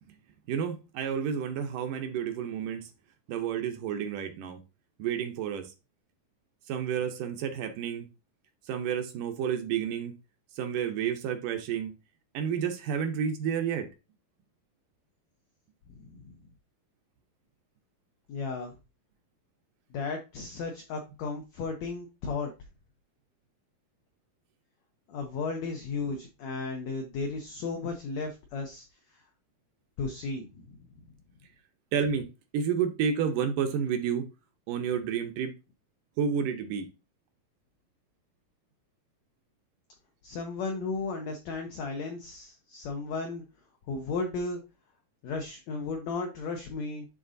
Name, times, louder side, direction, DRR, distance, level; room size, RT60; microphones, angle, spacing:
voice 1, 0.5-2.9 3.3-4.6 5.0-5.7 6.7-8.1 8.7-10.2 10.6-11.9 12.3-13.9 31.9-32.3 32.5-34.3 34.7-35.5 36.2-36.9, right 7 dB, 75° right, 2.1 m, -30 dB
voice 2, 15.9-16.3 18.3-18.7 19.9-22.5 25.1-28.9 29.1-29.2 30.0-30.8 40.2-43.4 43.9-44.6 45.2-47.1, left 4 dB, 85° left, 1.5 m, -34 dB
11.0 x 3.7 x 2.6 m
omnidirectional pair, 4.2 m